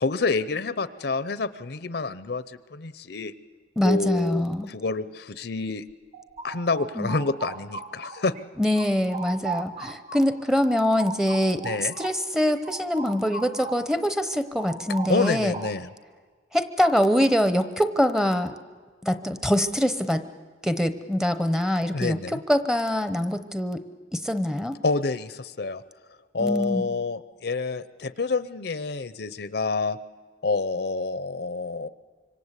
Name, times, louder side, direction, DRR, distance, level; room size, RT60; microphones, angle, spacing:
voice 1, 0.0-3.3 3.8-5.8 6.4-8.3 11.6-11.9 15.1-15.9 21.9-22.4 24.8-25.8 26.3-30.0 30.4-31.9, left 3 dB, 60° left, 14 dB, 0.7 m, -28 dB
voice 2, 3.8-4.7 7.0-7.1 8.6-11.7 12.0-15.5 16.5-18.5 19.0-20.2 20.6-22.2 22.5-23.8 24.1-24.8 26.4-26.9, equal, 5° right, 9 dB, 0.9 m, -24 dB
sound 1, 5.9-8.4 8.7-14.0 14.3-16.0, right 4 dB, 40° right, 1.3 m, -38 dB
26.0 x 24.5 x 8.2 m, 1.5 s
head